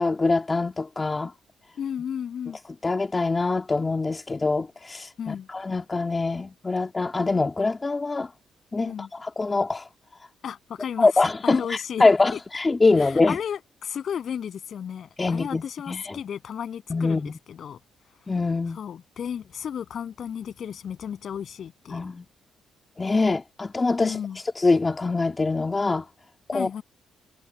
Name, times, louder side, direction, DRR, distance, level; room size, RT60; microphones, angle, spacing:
voice 1, 0.0-1.3 2.8-8.3 8.7-9.9 11.0-13.4 15.2-16.2 16.9-17.3 18.3-18.8 21.9-22.3 23.0-26.1 26.5-26.7, left 3 dB, 25° left, 1.8 m, -24 dB
voice 2, 1.8-2.6 5.2-5.5 8.8-9.1 10.4-11.1 11.4-12.0 12.3-12.4 13.0-17.8 18.7-22.0 24.0-24.4 26.5-26.8, left 8 dB, 60° left, 7.4 m, -33 dB
cardioid pair, 90°, 0 cm